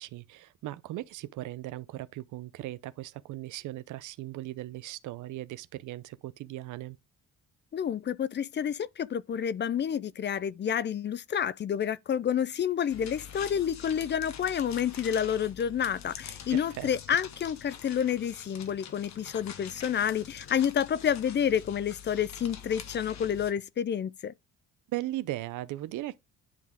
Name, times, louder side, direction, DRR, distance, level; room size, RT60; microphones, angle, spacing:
voice 1, 0.0-7.0 16.5-16.9 24.9-26.2, right 16 dB, 80° right, 0.6 m, -38 dB
voice 2, 7.7-24.3, left 8 dB, 35° left, 0.4 m, -29 dB
sound 1, 12.9-23.5, left 8 dB, 65° left, 1.2 m, -45 dB
10.5 x 3.6 x 3.4 m
cardioid pair, 90°, 30 cm